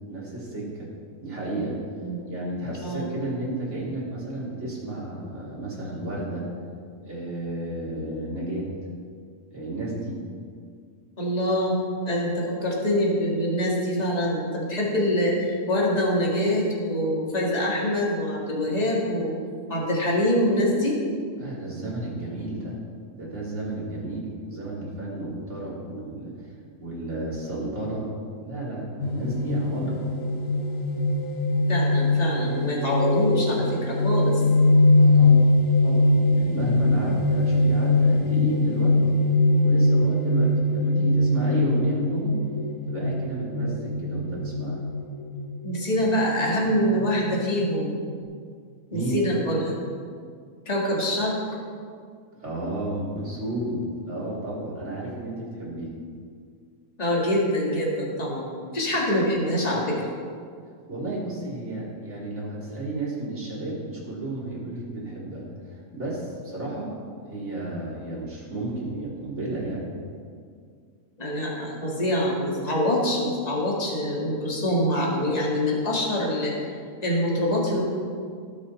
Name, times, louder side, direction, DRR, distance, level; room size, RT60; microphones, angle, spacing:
voice 1, 0.1-0.9 1.2-1.8 2.3-6.4 7.0-8.7 9.5-10.2 21.4-22.8 23.1-26.5 26.8-28.1 28.4-30.1 35.0-35.4 35.8-39.0 39.6-42.4 42.9-44.8 48.9-49.2 52.3-55.9 60.9-65.4 65.7-69.8, right 2 dB, 50° right, -6 dB, 3.5 m, -32 dB
voice 2, 2.8-3.1 11.2-11.8 12.1-19.3 19.7-21.0 31.7-34.4 45.6-47.9 48.9-49.7 50.7-51.4 57.0-60.1 71.2-76.5 77.0-77.8, left 1 dB, 25° left, -4 dB, 2.1 m, -25 dB
sound 1, 29.0-48.2, left 2 dB, 65° left, 1.5 m, -22 dB
18.5 x 6.4 x 4.3 m, 2.1 s
omnidirectional pair, 1.5 m